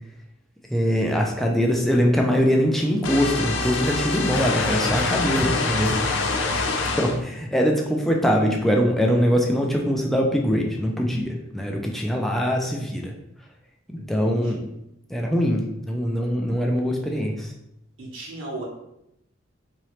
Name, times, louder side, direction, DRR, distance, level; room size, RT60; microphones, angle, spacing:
voice 1, 0.7-6.2 6.5-13.1 13.9-14.6 15.1-17.5, equal, ahead, 0 dB, 0.3 m, -23 dB
sound 1, 3.0-7.2, left 3 dB, 65° left, 0.4 m, -25 dB
sound 2, 3.6-5.5 5.8-6.3, left 1 dB, 35° left, 0.7 m, -38 dB
voice 2, 13.9-14.6 18.0-18.6, right 2 dB, 75° right, -3 dB, 1.0 m, -36 dB
2.9 x 2.8 x 3.1 m, 0.83 s
head